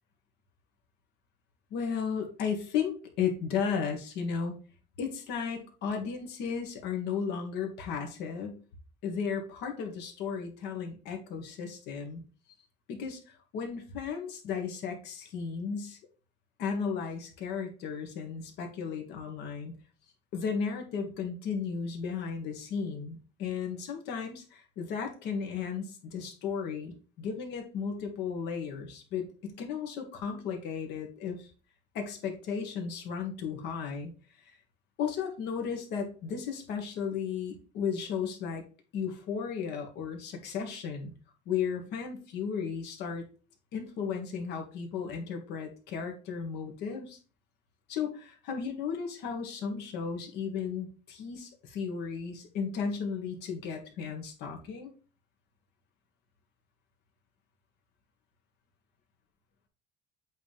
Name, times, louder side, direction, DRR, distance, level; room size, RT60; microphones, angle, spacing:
voice 1, 1.7-4.5 5.0-8.6 9.0-12.2 12.9-16.0 16.6-19.7 20.3-31.5 31.9-34.1 35.0-38.6 38.9-41.1 41.4-43.2 43.7-47.2 47.9-54.9, left 6 dB, 90° left, 3 dB, 1.7 m, -34 dB
8.2 x 4.1 x 3.5 m, 0.35 s
cardioid pair, 110°, 17 cm